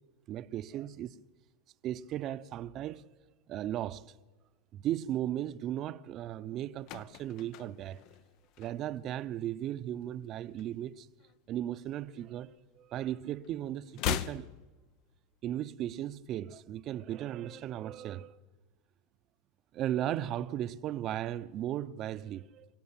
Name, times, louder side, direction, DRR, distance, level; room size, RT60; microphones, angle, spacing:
voice 1, 0.3-1.2 1.8-3.1 3.5-4.1 4.7-8.0 8.6-11.1 11.5-14.5 15.4-18.3 19.7-22.7, right 12 dB, 40° right, 0.7 m, -36 dB
sound 1, 6.5-9.2 9.4-9.7 10.0-11.5 11.8-13.1 13.4-15.5 15.7-15.8, left 11 dB, 55° left, 0.7 m, -40 dB
25.0 x 15.5 x 8.8 m
supercardioid pair, 130°, 0 cm